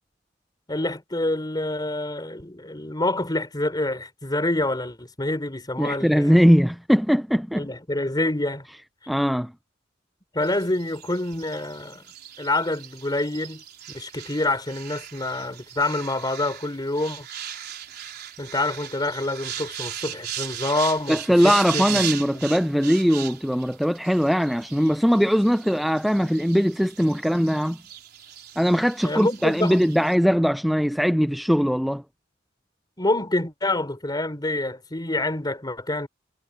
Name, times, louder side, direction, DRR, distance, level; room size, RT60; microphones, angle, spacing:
voice 1, 0.7-6.4 7.6-8.7 10.3-12.0 12.4-13.6 13.9-17.3 18.4-22.5 29.0-29.8 33.0-36.1, left 2 dB, 20° left, 3.6 m, -27 dB
voice 2, 5.8-7.7 9.1-9.5 21.1-27.8 28.6-32.0, equal, ahead, 0.4 m, -20 dB
sound 1, 10.4-30.1, right 10 dB, 55° right, 4.3 m, -38 dB
head